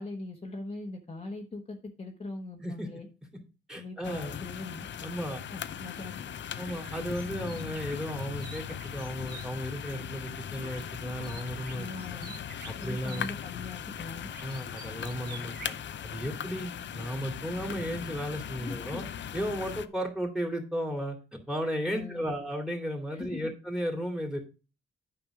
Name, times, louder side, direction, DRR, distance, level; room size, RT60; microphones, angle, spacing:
voice 1, 0.0-3.1 3.7-4.9 5.5-6.2 11.7-12.4 12.8-14.3 18.5-19.0 21.9-22.3 23.1-23.5, left 2 dB, 30° left, 1 dB, 1.2 m, -41 dB
voice 2, 3.7-4.3 5.0-5.4 6.6-12.2 12.7-13.3 14.4-15.8 16.0-19.0 19.3-24.4, equal, 5° right, 4 dB, 2.4 m, -34 dB
sound 1, 4.0-19.9, left 8 dB, 60° left, 0.6 m, -39 dB
sound 2, 6.6-9.5 10.6-11.0 11.2-13.3 14.3-15.8, right 4 dB, 50° right, 2.1 m, -48 dB
9.3 x 5.3 x 4.8 m, 0.32 s
cardioid pair, 110°, 21 cm